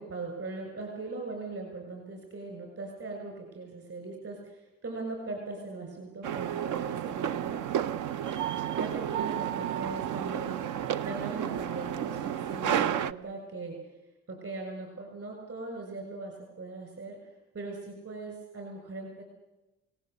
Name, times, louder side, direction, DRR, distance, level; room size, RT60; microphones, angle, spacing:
voice 1, 0.0-7.9 8.7-13.8 14.3-17.2 17.5-19.2, right 3 dB, 50° right, 2 dB, 6.7 m, -39 dB
sound 1, 6.2-13.1, right 10 dB, 80° right, 0.7 m, -31 dB
28.0 x 18.5 x 8.1 m, 1.0 s
cardioid pair, 90°, 30 cm